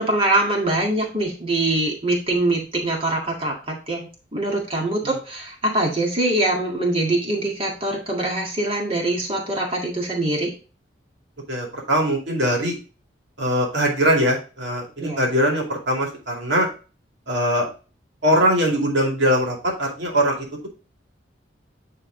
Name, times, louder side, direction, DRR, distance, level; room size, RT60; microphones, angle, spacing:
voice 1, 0.0-10.5 15.0-15.2, right 2 dB, 30° right, 0 dB, 1.9 m, -23 dB
voice 2, 11.5-12.8 13.4-16.7 17.3-17.7 18.2-20.7, equal, 65° right, 0 dB, 2.4 m, -21 dB
9.4 x 3.8 x 3.8 m, 0.34 s
head